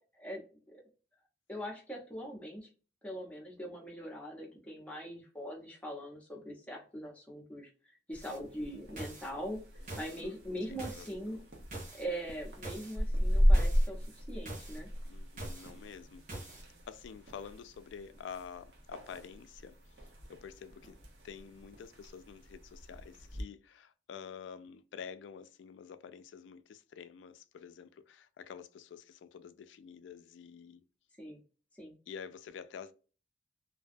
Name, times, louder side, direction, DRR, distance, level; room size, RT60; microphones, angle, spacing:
voice 1, 1.5-2.7 3.0-9.6 10.0-11.4 11.9-14.9 31.2-31.4 31.7-31.9, equal, 5° left, 0.7 m, -42 dB
sound 1, 8.1-23.4, equal, 65° right, 0.8 m, -35 dB
sound 2, 8.2-8.4 9.0-9.3 9.9-10.2 10.8-11.1 11.7-12.0 12.6-13.0 13.5-13.9 14.5-14.8 15.4-15.7 16.3-16.6, right 1 dB, 45° right, 1.0 m, -43 dB
voice 2, 10.0-10.3 10.9-11.5 15.1-21.0 21.2-30.9 32.1-32.9, left 7 dB, 85° left, 0.3 m, -49 dB
2.5 x 2.2 x 2.4 m
head